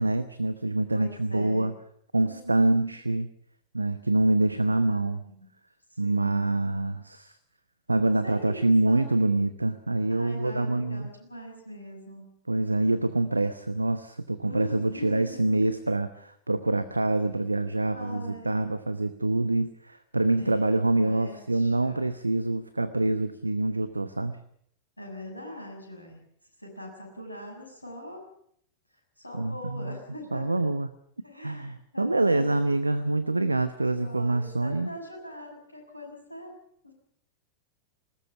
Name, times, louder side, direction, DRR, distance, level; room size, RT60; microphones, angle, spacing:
voice 1, 0.0-1.7 2.1-3.3 3.7-5.2 6.0-7.4 7.9-11.1 12.5-24.4 29.3-30.0 30.3-30.9 31.4-34.9, right 2 dB, 80° right, 13 dB, 0.9 m, -26 dB
voice 2, 0.9-1.7 2.2-3.0 4.5-5.5 5.9-6.5 8.2-9.3 10.1-12.4 14.4-15.7 17.9-18.7 20.4-22.0 25.0-26.2 26.6-28.2 29.2-30.5 31.2-32.7 33.9-36.5 36.8-36.9, left 1 dB, 85° left, 1 dB, 6.4 m, -42 dB
21.5 x 19.0 x 7.2 m, 0.68 s
figure-of-eight pair, 90°, 0 cm